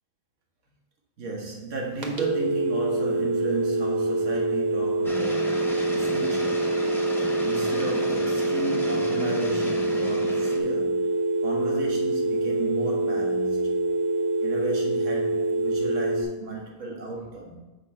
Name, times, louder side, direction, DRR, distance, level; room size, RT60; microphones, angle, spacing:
voice 1, 1.2-6.7 7.2-11.1 11.4-13.9 14.4-17.6, right 2 dB, 90° right, 0 dB, 1.6 m, -34 dB
sound 1, 2.0-16.2, right 2 dB, 40° right, 0.9 m, -25 dB
sound 2, 5.0-10.6, equal, ahead, 0.7 m, -35 dB
7.2 x 5.1 x 4.3 m, 1.1 s
omnidirectional pair, 1.2 m